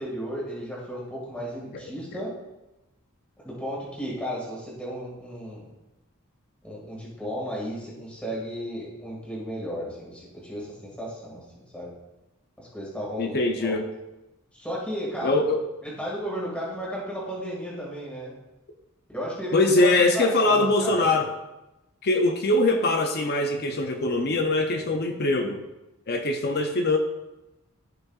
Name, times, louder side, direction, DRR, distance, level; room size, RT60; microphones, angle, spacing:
voice 1, 0.0-2.3 3.4-5.7 6.6-11.9 12.6-13.8 14.5-15.4 16.0-18.4 19.1-21.1, equal, 5° left, -6 dB, 2.1 m, -34 dB
voice 2, 13.2-13.9 15.2-15.6 19.5-21.3 22.0-25.6 26.1-27.0, left 2 dB, 45° left, 5 dB, 0.6 m, -22 dB
14.5 x 5.4 x 2.4 m, 0.99 s
head